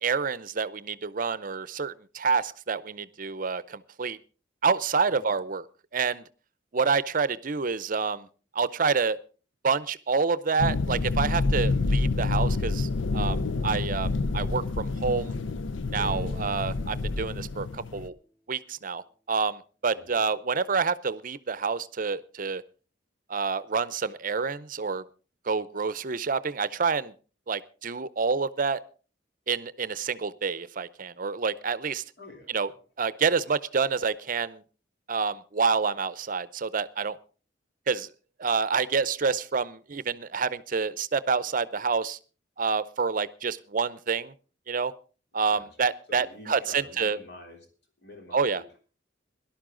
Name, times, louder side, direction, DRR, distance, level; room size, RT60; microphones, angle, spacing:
voice 1, 0.0-4.2 4.6-5.6 5.9-6.2 6.7-8.3 8.5-9.2 9.6-15.3 15.9-18.2 18.5-22.6 23.3-25.0 25.5-27.1 27.5-28.8 29.5-32.0 32.5-32.7 33.0-34.6 35.1-37.2 37.9-38.1 38.4-42.2 42.6-44.3 44.7-44.9 45.3-47.2 48.3-48.6, right 5 dB, 45° right, 17 dB, 0.6 m, -28 dB
sound 1, 10.6-18.1, left 3 dB, 85° left, 0.6 m, -28 dB
sound 2, 15.9-19.1, right 1 dB, 10° left, 5.7 m, -49 dB
voice 2, 19.9-20.2 32.2-32.7 45.4-45.7 46.1-47.7 48.0-48.8, left 2 dB, 60° left, 3 dB, 3.4 m, -47 dB
18.0 x 12.0 x 3.8 m, 0.36 s
head